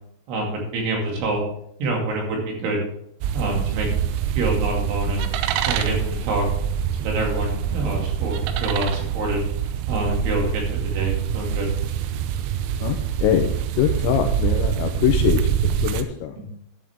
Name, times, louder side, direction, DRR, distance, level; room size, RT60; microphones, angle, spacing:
voice 1, 0.3-1.5 1.8-2.8 3.3-4.1 4.3-5.3 5.7-6.4 7.0-9.4 9.9-11.7 16.4-16.5, right 2 dB, 65° right, 0 dB, 4.8 m, -26 dB
sound 1, 3.2-16.0, right 9 dB, 85° right, 3.6 m, -25 dB
voice 2, 12.8-13.5 13.8-16.4, left 10 dB, 85° left, 5 dB, 2.6 m, -23 dB
13.5 x 9.3 x 3.6 m, 0.72 s
omnidirectional pair, 6.0 m